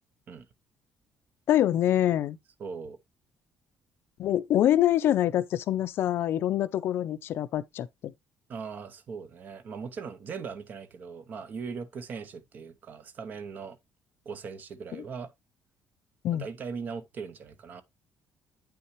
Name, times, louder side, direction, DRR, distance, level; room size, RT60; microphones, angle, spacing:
voice 1, 1.5-2.4 4.2-7.9 16.2-16.4, left 12 dB, 50° left, 0.5 m, -25 dB
voice 2, 2.6-3.0 8.5-13.8 14.3-15.3 16.3-17.8, right 5 dB, 35° right, 0.7 m, -39 dB
8.6 x 5.7 x 3.0 m
cardioid pair, 180°, 5 cm